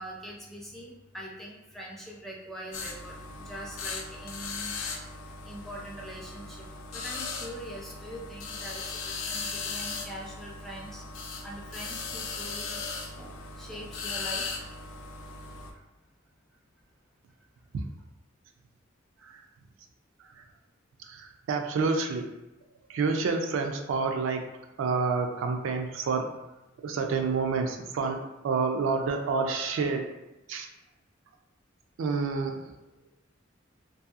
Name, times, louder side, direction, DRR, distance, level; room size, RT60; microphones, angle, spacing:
voice 1, 0.0-4.7 5.4-11.0 11.4-12.9 13.1-14.8 15.7-15.8, equal, ahead, -3 dB, 0.4 m, -43 dB
sound 1, 2.7-15.7, left 4 dB, 85° left, 0.4 m, -38 dB
voice 2, 21.1-22.3 22.9-24.4 24.8-26.3 26.8-28.2 28.4-30.1 30.5-30.7 32.0-32.5, right 4 dB, 75° right, 4 dB, 0.3 m, -28 dB
2.7 x 2.5 x 2.3 m, 1.0 s
head